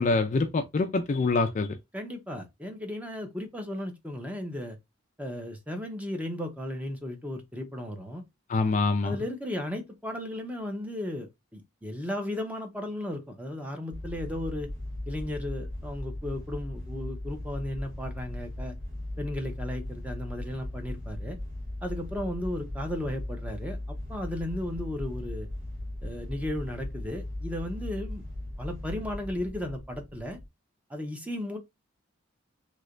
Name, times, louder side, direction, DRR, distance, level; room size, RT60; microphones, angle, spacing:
voice 1, 0.0-1.8 8.5-9.2, left 3 dB, 35° left, 0.4 m, -25 dB
voice 2, 1.9-4.8 5.2-8.2 9.0-14.7 15.1-18.7 19.2-21.4 21.8-25.5 26.0-28.2 28.6-30.4 30.9-31.6, left 1 dB, 5° right, 0.7 m, -35 dB
sound 1, 13.9-30.5, left 1 dB, 65° right, 1.6 m, -38 dB
3.2 x 2.8 x 2.4 m
head